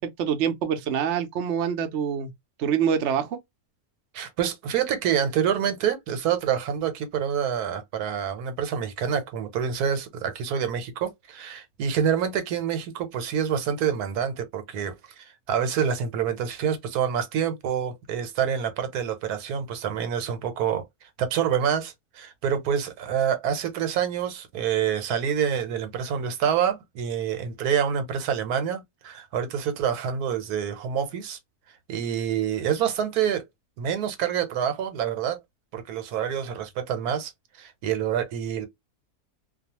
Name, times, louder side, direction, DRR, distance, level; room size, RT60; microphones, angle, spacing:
voice 1, 0.0-2.3 2.6-3.4, right 8 dB, 65° right, 0.7 m, -25 dB
voice 2, 4.1-20.8 21.2-31.4 31.9-33.4 33.8-35.4 35.7-37.3 37.6-38.7, right 8 dB, 85° right, 1.2 m, -27 dB
2.4 x 2.3 x 2.8 m
omnidirectional pair, 1.6 m